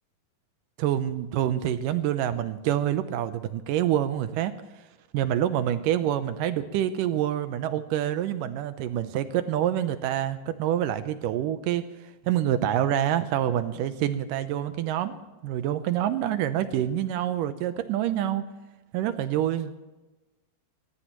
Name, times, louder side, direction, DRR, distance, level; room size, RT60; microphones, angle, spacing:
voice 1, 0.8-4.5 5.1-11.8 12.3-15.2 15.4-18.4 18.9-19.8, right 11 dB, 80° right, 11 dB, 2.3 m, -26 dB
28.5 x 14.5 x 3.0 m, 1.1 s
omnidirectional pair, 3.9 m